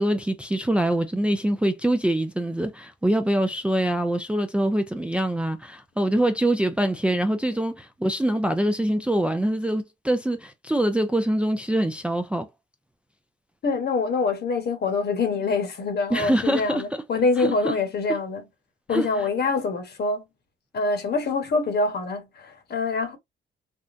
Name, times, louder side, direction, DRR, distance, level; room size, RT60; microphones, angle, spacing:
voice 1, 0.0-12.5 16.1-16.8 17.4-17.7 18.9-19.1, right 1 dB, 5° right, 0.4 m, -24 dB
voice 2, 13.6-18.5 18.9-20.2 20.7-23.2, left 4 dB, 55° left, 1.1 m, -25 dB
3.6 x 2.1 x 2.6 m
cardioid pair, 90°, 20 cm